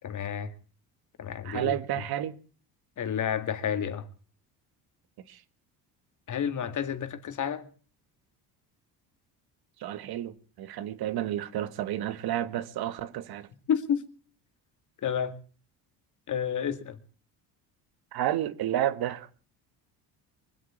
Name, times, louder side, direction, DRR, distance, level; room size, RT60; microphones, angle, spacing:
voice 1, 0.0-0.5 1.2-2.0 3.0-4.1 6.3-7.7 13.7-14.0 15.0-15.4 16.3-17.0, left 8 dB, 50° left, 2.2 m, -30 dB
voice 2, 1.4-2.4 5.3-5.4 9.8-13.5 18.1-19.3, right 12 dB, 65° right, 1.7 m, -31 dB
23.5 x 8.5 x 7.2 m
cardioid pair, 95°, 40 cm